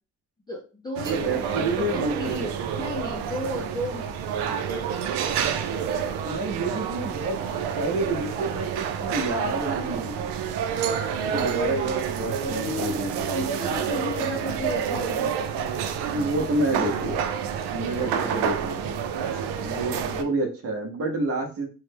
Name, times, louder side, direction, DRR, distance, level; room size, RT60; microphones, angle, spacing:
voice 1, 0.5-4.1 4.4-5.1 10.7-11.3 12.4-15.3 17.9-18.3 19.2-20.3, left 1 dB, 10° left, -5 dB, 0.4 m, -34 dB
voice 2, 1.0-2.5 6.2-7.5 7.8-10.3 11.3-13.5 16.1-17.2 17.7-18.8 19.6-21.7, right 2 dB, 40° right, 2 dB, 0.8 m, -29 dB
sound 1, 1.0-20.2, right 7 dB, 85° right, 0.5 m, -29 dB
3.1 x 2.1 x 3.3 m, 0.35 s
cardioid pair, 155°, 38 cm